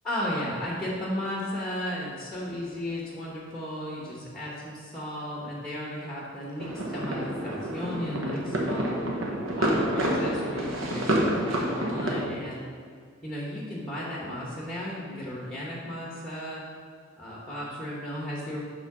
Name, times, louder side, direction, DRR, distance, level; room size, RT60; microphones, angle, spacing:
voice 1, 0.0-9.0 9.5-12.6 13.2-16.6 17.2-18.6, left 1 dB, 5° left, -5 dB, 1.0 m, -35 dB
sound 1, 6.6-12.3, right 1 dB, 85° right, 1.0 m, -28 dB
7.0 x 3.7 x 5.9 m, 2.1 s
head